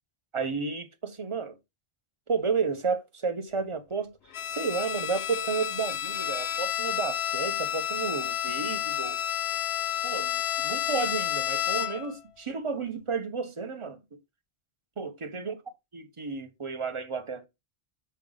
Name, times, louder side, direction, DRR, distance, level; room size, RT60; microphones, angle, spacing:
voice 1, 0.3-1.6 2.3-4.1 4.5-9.2 10.0-14.2 15.0-15.6 15.9-17.5, right 5 dB, 35° right, 0.8 m, -32 dB
Bowed string instrument, 4.3-12.2, left 11 dB, 80° left, 0.9 m, -30 dB
5.7 x 4.8 x 3.8 m
omnidirectional pair, 1.0 m